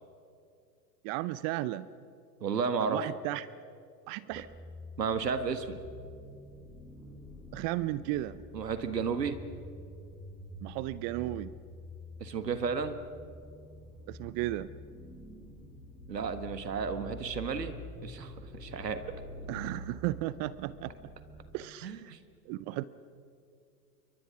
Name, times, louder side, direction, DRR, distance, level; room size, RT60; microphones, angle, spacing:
voice 1, 1.0-1.9 2.8-3.5 4.1-4.5 7.5-8.4 10.6-11.5 14.1-14.7 19.5-21.1 21.5-22.2 22.5-22.8, right 16 dB, 35° right, 17 dB, 0.6 m, -34 dB
voice 2, 2.4-3.0 5.0-5.8 8.5-9.4 12.2-13.0 16.1-17.8 18.0-18.3 18.6-19.0 21.8-22.2, right 5 dB, 85° right, 9 dB, 1.7 m, -32 dB
sound 1, 4.3-21.6, left 1 dB, 5° right, 4.8 m, -47 dB
28.0 x 23.5 x 6.1 m, 2.4 s
hypercardioid pair, 95°, 48 cm